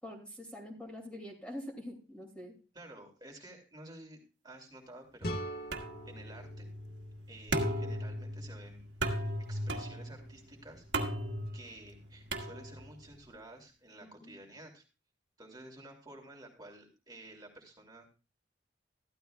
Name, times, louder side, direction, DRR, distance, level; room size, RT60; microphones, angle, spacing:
voice 1, 0.0-2.6 14.0-14.4, left 1 dB, 5° left, 1 dB, 2.4 m, -45 dB
voice 2, 2.7-5.4 6.1-6.7 7.3-8.8 9.1-11.1 11.5-14.8 15.4-18.1, right 1 dB, 25° right, 2 dB, 2.7 m, -52 dB
sound 1, 5.2-8.1, equal, 60° left, 1.4 m, -43 dB
sound 2, 5.7-13.1, right 1 dB, 80° right, 1.6 m, -37 dB
14.5 x 12.5 x 2.3 m, 0.32 s
head